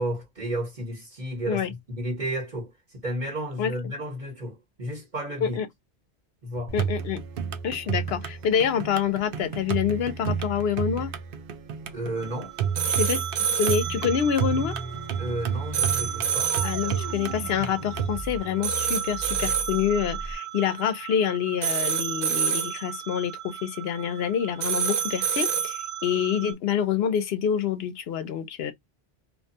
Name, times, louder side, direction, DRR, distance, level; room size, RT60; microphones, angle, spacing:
voice 1, 0.0-5.6 6.4-6.7 11.9-12.5 15.2-16.5, right 1 dB, 45° right, 1.3 m, -32 dB
voice 2, 6.7-7.2 7.6-11.1 12.9-13.2 13.6-14.7 16.6-28.7, left 8 dB, 70° left, 0.8 m, -27 dB
sound 1, 6.7-18.2, right 7 dB, 65° right, 0.7 m, -31 dB
sound 2, 12.2-26.5, right 8 dB, 80° right, 1.0 m, -30 dB
sound 3, 14.5-20.3, equal, 25° left, 0.6 m, -39 dB
2.5 x 2.3 x 2.6 m
omnidirectional pair, 1.1 m